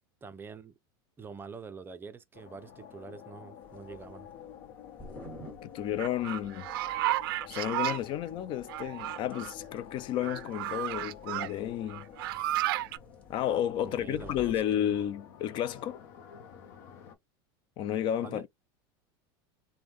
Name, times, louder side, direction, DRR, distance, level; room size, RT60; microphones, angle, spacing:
voice 1, 0.2-0.7 1.2-4.3 13.8-14.9 18.2-18.5, right 5 dB, 20° right, 0.5 m, -45 dB
sound 1, 2.3-17.2, left 9 dB, 65° left, 0.8 m, -50 dB
sound 2, 3.6-15.1, left 1 dB, 10° left, 1.7 m, -54 dB
voice 2, 5.6-6.7 7.5-12.1 13.3-16.0 17.8-18.5, left 10 dB, 45° left, 0.3 m, -32 dB
sound 3, 6.0-8.0 8.7-9.5 10.2-11.5 11.9-13.0, right 15 dB, 80° right, 0.4 m, -32 dB
3.5 x 2.1 x 3.0 m
supercardioid pair, 125°, 12 cm